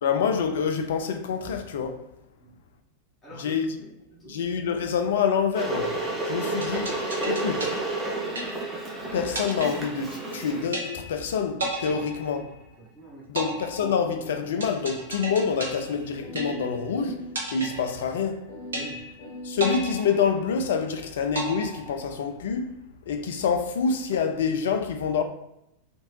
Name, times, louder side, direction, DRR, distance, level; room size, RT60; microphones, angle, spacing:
voice 1, 0.0-2.0 3.3-3.8 4.3-7.0 7.3-7.7 9.1-12.6 13.3-17.3 17.5-18.5 19.4-22.7 23.1-25.2, left 6 dB, 60° left, 0.3 m, -27 dB
voice 2, 3.2-4.5 6.0-6.2 11.9-12.0 12.8-13.3 18.7-19.1, right 1 dB, 15° left, 0.9 m, -46 dB
Water / Boiling, 5.6-10.7, right 2 dB, 20° right, 0.6 m, -31 dB
sound 1, 6.6-8.9 9.3-10.4 10.7-11.3 11.6-12.9 13.4-16.9 17.4-18.4 18.7-19.3 19.6-20.9 21.3-22.4, right 2 dB, 70° right, 0.6 m, -34 dB
sound 2, 14.0-15.0 15.3-15.4 16.2-17.5 18.5-20.5, equal, 45° left, 0.9 m, -42 dB
2.8 x 2.5 x 3.0 m
figure-of-eight pair, 90°, 0 cm